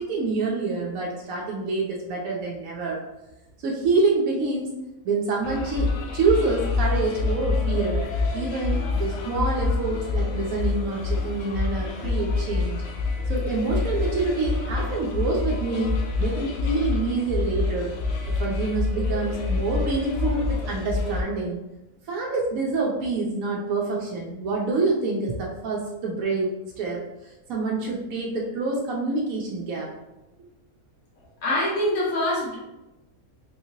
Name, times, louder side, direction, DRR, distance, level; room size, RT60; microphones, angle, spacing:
voice 1, 0.0-3.0 3.6-4.7 5.0-8.0 8.3-12.8 13.3-17.9 18.3-21.6 22.1-26.5 26.8-29.9, right 3 dB, 80° right, -3 dB, 1.0 m, -27 dB
sound 1, 5.4-21.2, left 4 dB, 65° left, 0.7 m, -27 dB
voice 2, 31.4-32.6, left 1 dB, 80° left, -6 dB, 1.6 m, -24 dB
3.6 x 2.8 x 2.7 m, 0.97 s
omnidirectional pair, 1.5 m